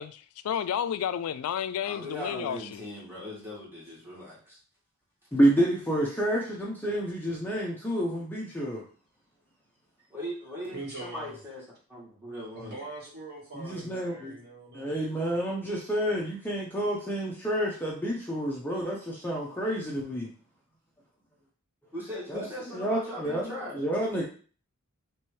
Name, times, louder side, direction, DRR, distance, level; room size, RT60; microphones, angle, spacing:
voice 1, 0.0-2.9, left 9 dB, 75° left, 0.3 m, -31 dB
voice 2, 1.8-4.6 10.1-11.6 11.9-12.8 21.9-23.8, equal, 10° right, 2.1 m, -39 dB
voice 3, 5.3-8.8 13.5-14.4 14.7-20.3 22.3-22.5 22.7-24.2, right 1 dB, 10° left, 0.7 m, -29 dB
voice 4, 10.7-11.4 12.5-15.0, right 2 dB, 50° right, 2.2 m, -42 dB
3.3 x 3.0 x 4.6 m
head